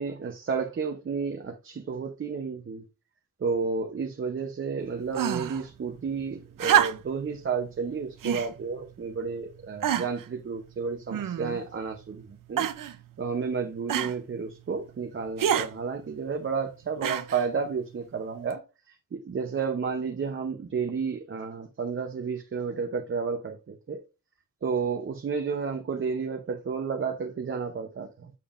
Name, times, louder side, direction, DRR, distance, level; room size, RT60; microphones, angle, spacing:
voice 1, 0.0-2.8 3.4-12.7 13.2-18.6 18.9-24.0 24.6-28.3, right 5 dB, 40° right, 0.7 m, -31 dB
sound 1, 5.1-5.6 6.6-7.2 8.2-8.5 9.2-9.3 9.8-10.3 11.1-11.6 12.6-13.0 13.9-14.2 15.4-15.7 17.0-17.5 18.5-18.6, right 9 dB, 85° right, 0.7 m, -26 dB
7.1 x 6.8 x 2.5 m
wide cardioid pair, 150°, 32 cm